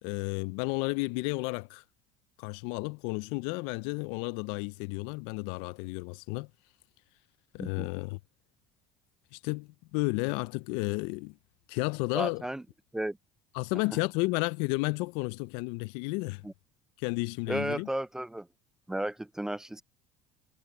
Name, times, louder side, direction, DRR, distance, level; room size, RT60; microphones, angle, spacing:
voice 1, 0.0-1.8 2.4-6.5 7.5-8.2 9.3-11.3 11.7-12.5 13.5-16.4 17.0-17.9, left 26 dB, 80° left, 0.4 m, -32 dB
voice 2, 7.6-7.9 12.1-12.6 12.9-13.2 16.4-16.5 17.5-18.5 18.9-19.8, right 1 dB, 5° right, 0.3 m, -33 dB
supercardioid pair, 105°, 9 cm